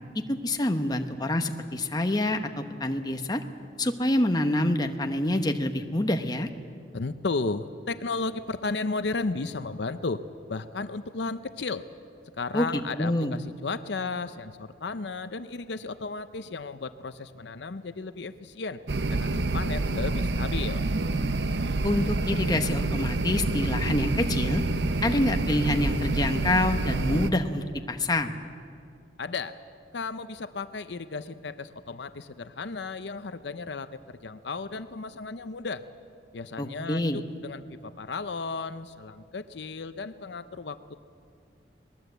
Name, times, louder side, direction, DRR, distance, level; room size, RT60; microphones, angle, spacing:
voice 1, 0.3-3.4 3.8-6.5 12.5-12.7 13.0-13.4 21.8-24.6 25.0-28.3 36.6-37.2, left 1 dB, 20° left, 6 dB, 1.0 m, -26 dB
voice 2, 6.9-10.2 10.5-11.8 12.4-18.8 19.1-20.8 29.2-29.6 29.9-35.8 36.3-40.9, left 3 dB, 70° left, 12 dB, 0.7 m, -34 dB
sound 1, 18.9-27.3, right 2 dB, 70° right, 0.8 m, -27 dB
22.0 x 19.5 x 8.0 m, 2.4 s
head